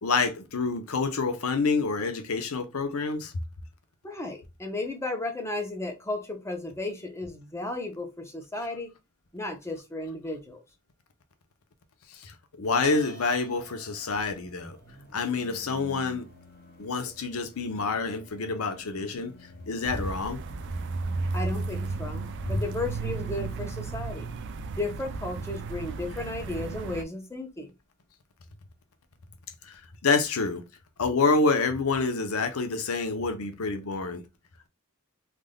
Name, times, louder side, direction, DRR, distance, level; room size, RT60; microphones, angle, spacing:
voice 1, 0.0-3.3 12.2-14.8 15.1-16.3 16.8-19.3 19.7-20.4 29.7-30.6 31.0-34.2, left 4 dB, 80° left, 0.7 m, -27 dB
voice 2, 4.0-8.9 9.3-10.6 21.3-24.3 24.7-27.7, left 2 dB, 10° left, 0.7 m, -34 dB
sound 1, 12.8-16.7 19.4-19.5 19.7-19.8, left 2 dB, 80° right, 1.4 m, -45 dB
sound 2, 14.4-23.6, left 1 dB, 45° left, 0.7 m, -52 dB
sound 3, 19.8-27.0, right 3 dB, 55° right, 0.3 m, -34 dB
3.5 x 2.5 x 2.2 m
head